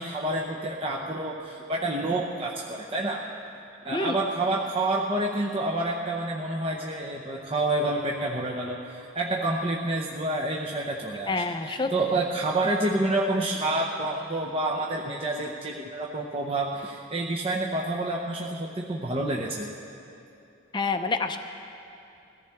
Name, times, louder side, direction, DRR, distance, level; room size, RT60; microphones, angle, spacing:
voice 1, 0.0-3.3 3.8-19.7, right 2 dB, 30° right, -2 dB, 0.8 m, -28 dB
voice 2, 3.9-4.6 11.3-11.9 20.7-21.4, left 3 dB, 25° left, 6 dB, 0.6 m, -28 dB
21.5 x 14.5 x 3.5 m, 2.7 s
head